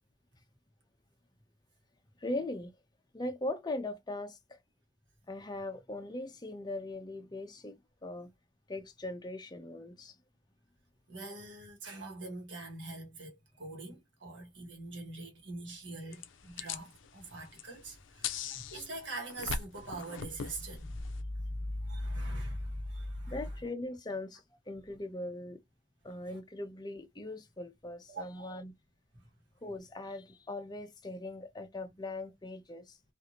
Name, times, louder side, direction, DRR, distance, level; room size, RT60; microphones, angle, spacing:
voice 1, 2.2-2.7 3.1-4.6 5.3-8.3 8.7-10.2 18.4-18.6 23.3-25.6 26.0-28.7 29.6-33.0, left 2 dB, 20° left, 0.5 m, -40 dB
voice 2, 11.1-23.6 26.2-26.4 28.1-28.5 29.1-29.3, right 1 dB, 80° right, 1.2 m, -41 dB
sound 1, 16.1-21.2, left 6 dB, 85° left, 0.4 m, -41 dB
2.7 x 2.5 x 2.8 m
head